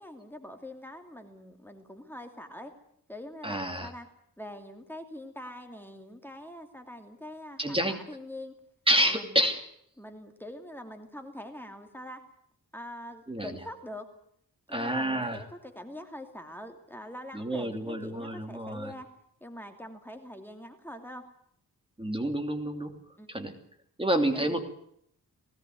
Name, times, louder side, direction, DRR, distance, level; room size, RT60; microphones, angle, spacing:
voice 1, 0.0-2.7 3.1-4.1 4.4-8.6 9.0-9.4 10.0-12.2 12.7-14.1 14.7-19.1 19.4-21.2 23.2-23.5 24.3-24.6, left 1 dB, 5° left, 5 dB, 2.6 m, -44 dB
voice 2, 3.4-3.9 7.6-8.0 8.9-9.6 13.3-13.5 14.7-15.4 17.3-18.9 22.0-22.9 23.3-23.5 24.0-24.6, right 1 dB, 15° right, 5 dB, 2.8 m, -28 dB
20.0 x 17.5 x 9.3 m, 0.70 s
wide cardioid pair, 90°, 36 cm